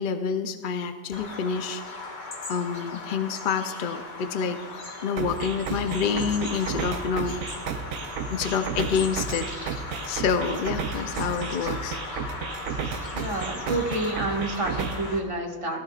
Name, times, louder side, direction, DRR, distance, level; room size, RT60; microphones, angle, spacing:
voice 1, 0.0-1.8 2.5-4.6 5.0-7.4 8.3-12.0, left 6 dB, 55° left, 8 dB, 0.5 m, -28 dB
Bird vocalization bird call bird song, 1.1-15.2, left 3 dB, 80° left, 1.8 m, -37 dB
sound 1, 5.2-15.2, right 6 dB, 75° right, 1.1 m, -33 dB
voice 2, 13.1-15.8, right 2 dB, 20° right, -1 dB, 1.7 m, -29 dB
16.0 x 14.5 x 2.4 m, 1.4 s
omnidirectional pair, 1.5 m